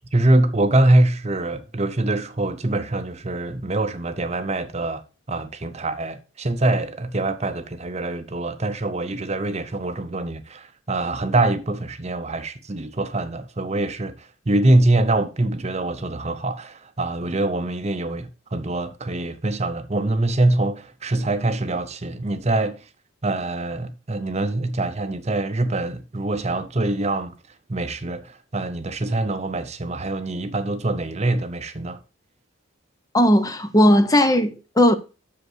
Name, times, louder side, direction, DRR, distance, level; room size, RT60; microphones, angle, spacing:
voice 1, 0.1-22.9 23.2-27.3 27.7-32.0, right 2 dB, 35° right, 0.7 m, -24 dB
voice 2, 33.1-35.0, equal, 15° left, 0.7 m, -17 dB
6.7 x 5.4 x 6.2 m
head